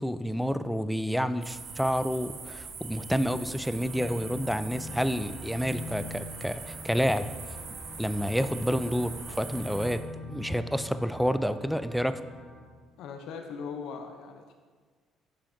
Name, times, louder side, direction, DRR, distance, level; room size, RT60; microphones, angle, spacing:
voice 1, 0.0-7.3 8.0-10.0 10.3-12.2, equal, ahead, 12 dB, 0.3 m, -29 dB
sound 1, 1.4-9.9, right 4 dB, 65° right, 1.0 m, -42 dB
sound 2, 3.7-12.6, left 2 dB, 25° left, 1.2 m, -44 dB
voice 2, 13.0-14.5, left 5 dB, 75° left, 5 dB, 0.5 m, -39 dB
8.4 x 5.6 x 2.6 m, 1.5 s
supercardioid pair, 70°, 0 cm